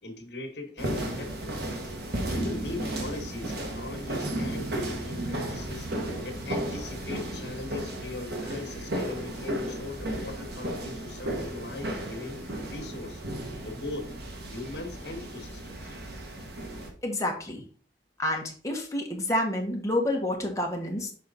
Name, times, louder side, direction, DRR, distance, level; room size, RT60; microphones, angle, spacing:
voice 1, 0.0-1.5 2.3-5.9 6.2-12.4 12.7-13.2 13.6-14.2 14.5-15.9, left 2 dB, 70° left, 3 dB, 1.6 m, -39 dB
sound 1, 0.8-16.9, right 1 dB, 65° right, 1.5 m, -34 dB
voice 2, 17.0-17.6 18.2-21.1, left 1 dB, 20° left, 0 dB, 1.5 m, -29 dB
6.7 x 4.2 x 4.1 m, 0.43 s
head